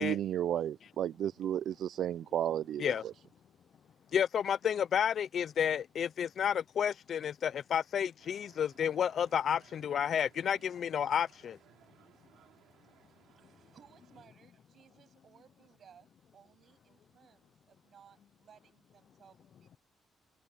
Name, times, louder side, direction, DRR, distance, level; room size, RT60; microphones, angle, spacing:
voice 1, 0.0-3.1, right 11 dB, 65° right, 0.4 m, -33 dB
voice 2, 4.1-11.6, left 8 dB, 50° left, 0.5 m, -31 dB
sound 1, 8.2-14.3, right 12 dB, 80° right, 5.2 m, -64 dB
voice 3, 13.2-19.8, right 8 dB, 50° right, 7.8 m, -62 dB
cardioid pair, 140°, 0 cm